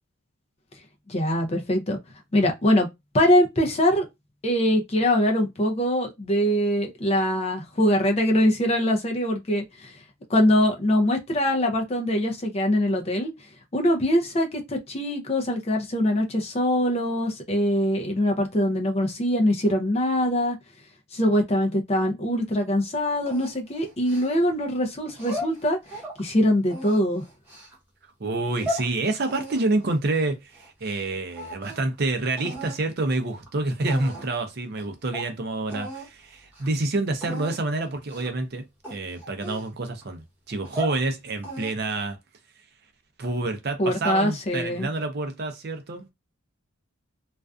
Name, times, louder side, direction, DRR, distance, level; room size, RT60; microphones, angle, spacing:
voice 1, 1.1-2.0 2.3-2.9 3.1-4.1 4.4-9.9 10.3-13.3 13.7-20.6 21.1-25.8 26.2-27.2 43.8-44.9, left 1 dB, 30° left, 0.5 m, -23 dB
sound 1, 23.3-24.6 25.1-26.2 26.7-27.7 28.3-28.9 29.3-31.0 31.3-31.9 32.4-32.8 33.5-33.6 33.9-34.4 34.8-34.9 35.1-35.3 35.7-36.1 36.4-36.7 37.2-37.6 38.1-38.4 38.8-40.0 40.5-41.0 41.4-41.9, equal, 10° right, 0.8 m, -36 dB
voice 2, 28.2-42.2 43.2-46.1, right 2 dB, 50° right, 0.5 m, -28 dB
2.5 x 2.3 x 2.3 m
head